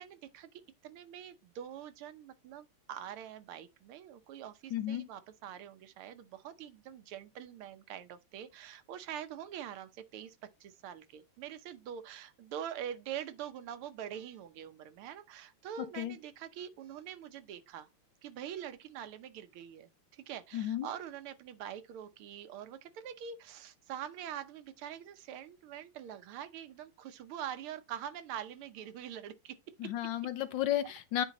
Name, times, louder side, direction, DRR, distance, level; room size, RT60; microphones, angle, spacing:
voice 1, 0.0-17.9 18.2-29.6 29.8-29.9, right 9 dB, 85° right, 1.7 m, -44 dB
voice 2, 4.7-5.1 15.9-16.2 20.5-20.9 29.8-31.2, left 12 dB, 70° left, 1.2 m, -33 dB
9.2 x 3.6 x 4.1 m
omnidirectional pair, 2.3 m